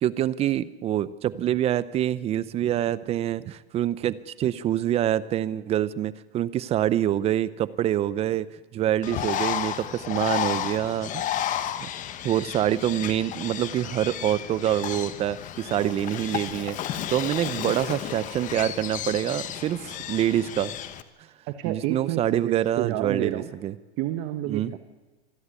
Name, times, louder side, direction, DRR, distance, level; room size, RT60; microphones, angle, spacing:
voice 1, 0.0-11.5 11.8-11.9 12.2-16.8 17.1-20.7 21.7-23.7 24.5-24.7, right 11 dB, 20° right, 18 dB, 0.6 m, -26 dB
Bird, 9.0-21.0, left 11 dB, 25° left, 1.1 m, -32 dB
voice 2, 15.7-16.0 21.5-23.5 24.0-24.8, right 13 dB, 35° right, 8 dB, 1.3 m, -30 dB
26.0 x 11.0 x 9.7 m, 1.2 s
hypercardioid pair, 135°, 32 cm